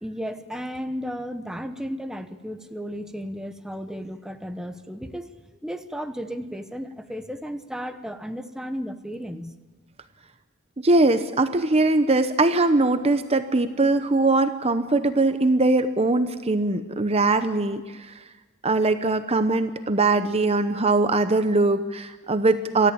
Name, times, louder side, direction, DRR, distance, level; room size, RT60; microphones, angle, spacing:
voice 1, 0.0-5.3 5.6-9.6, equal, 5° right, 7 dB, 1.0 m, -34 dB
voice 2, 10.8-18.1 18.6-22.9, right 2 dB, 30° right, 10 dB, 0.8 m, -21 dB
27.5 x 14.0 x 8.8 m, 1.3 s
head